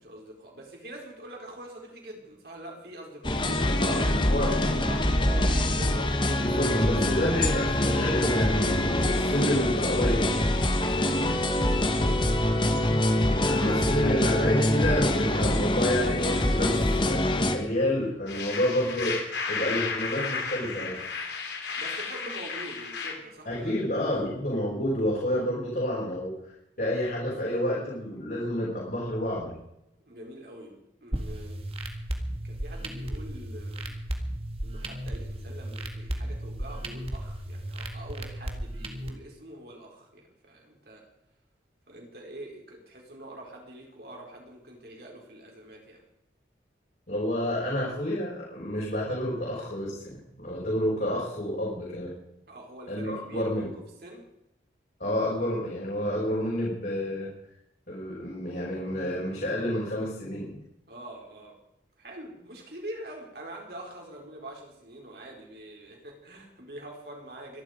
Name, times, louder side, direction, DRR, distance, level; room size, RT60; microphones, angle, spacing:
voice 1, 0.0-6.7 10.7-10.9 11.4-12.5 13.4-14.2 21.8-24.2 30.0-31.6 32.4-34.0 34.6-41.0 41.9-46.0 52.5-54.2 60.9-61.6 62.0-67.6, right 1 dB, 55° right, 0 dB, 4.8 m, -44 dB
sound 1, 3.2-17.6, left 1 dB, 25° left, 1.4 m, -24 dB
voice 2, 3.8-4.6 6.4-8.7 9.1-10.5 13.4-17.2 17.5-19.2 19.5-21.0 23.5-26.5 26.8-29.6 47.1-52.1 52.9-53.7 55.0-57.3 57.9-60.6, left 1 dB, 50° left, -6 dB, 5.6 m, -29 dB
sound 2, 18.3-23.1, left 5 dB, 70° left, 3.4 m, -33 dB
sound 3, 31.1-39.1, right 1 dB, 30° right, 1.9 m, -35 dB
24.5 x 11.5 x 5.2 m, 0.85 s
head